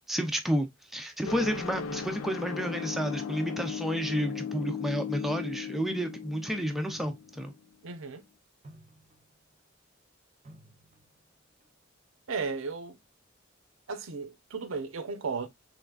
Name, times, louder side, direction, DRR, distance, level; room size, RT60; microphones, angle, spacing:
voice 1, 0.1-7.5, equal, ahead, 0.4 m, -31 dB
sound 1, 1.2-7.6, left 7 dB, 80° left, 0.4 m, -37 dB
sound 2, 5.5-5.6 6.9-7.6 8.0-8.3 8.6-9.5 10.4-11.2 11.6-11.9, right 1 dB, 35° right, 0.7 m, -53 dB
voice 2, 7.8-8.2 12.3-13.0 13.9-15.5, right 4 dB, 85° right, 0.6 m, -35 dB
3.5 x 3.2 x 2.3 m
head